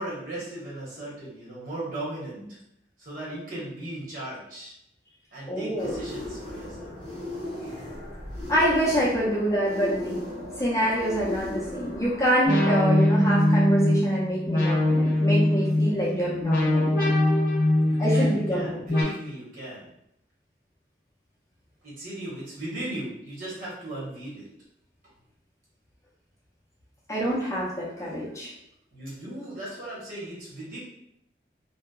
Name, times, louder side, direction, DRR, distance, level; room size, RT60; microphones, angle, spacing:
voice 1, 0.0-2.4 3.0-4.7 5.3-6.9 17.8-19.9 21.8-24.4 28.9-30.8, right 1 dB, 50° right, -7 dB, 1.0 m, -37 dB
voice 2, 5.5-6.0 8.5-10.3 10.6-17.1 18.0-18.8 27.1-28.5, equal, 15° left, -7 dB, 0.5 m, -26 dB
sound 1, 5.8-12.3, left 2 dB, 65° right, 1.2 m, -36 dB
sound 2, 12.5-19.0, left 1 dB, 50° left, 0.7 m, -22 dB
2.7 x 2.1 x 2.3 m, 0.76 s
head